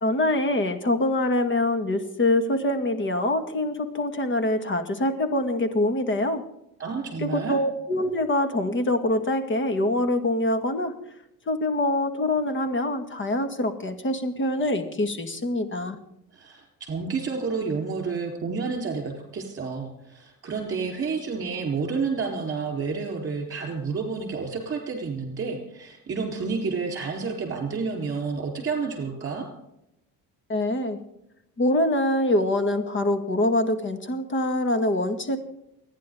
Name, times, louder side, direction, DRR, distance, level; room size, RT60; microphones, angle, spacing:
voice 1, 0.0-6.4 7.2-10.9 11.5-16.0 30.5-31.0 31.6-35.4, left 1 dB, 35° left, 8 dB, 2.0 m, -24 dB
voice 2, 6.8-7.6 16.3-29.5, right 4 dB, 35° right, 2 dB, 4.1 m, -30 dB
29.5 x 10.0 x 3.9 m, 0.83 s
cardioid pair, 130°, 35 cm